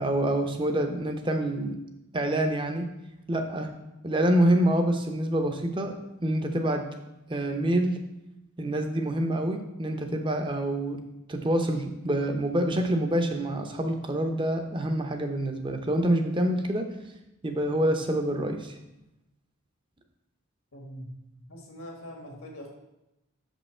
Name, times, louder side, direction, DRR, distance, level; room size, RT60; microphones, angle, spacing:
voice 1, 0.0-1.8 2.1-2.9 3.3-3.7 4.0-6.9 7.3-8.0 8.6-11.0 11.3-16.9 17.4-18.8, right 1 dB, 25° right, 5 dB, 0.6 m, -26 dB
voice 2, 20.7-22.7, equal, 80° left, 1 dB, 1.6 m, -43 dB
6.8 x 5.5 x 4.3 m, 0.91 s
head